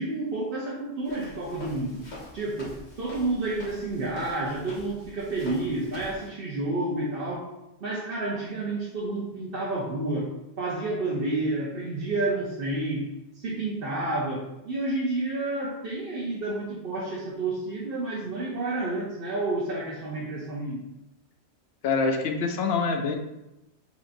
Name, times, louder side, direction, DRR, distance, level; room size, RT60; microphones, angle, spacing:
voice 1, 0.0-2.0 2.3-7.5 7.8-10.3 10.6-13.1 13.3-20.8, right 2 dB, 60° right, -5 dB, 1.0 m, -30 dB
Walk footsteps, 1.0-6.3, left 2 dB, 45° left, 1.2 m, -45 dB
voice 2, 21.8-23.1, left 4 dB, 70° left, 4 dB, 0.8 m, -25 dB
7.0 x 2.8 x 2.6 m, 0.94 s
omnidirectional pair, 1.1 m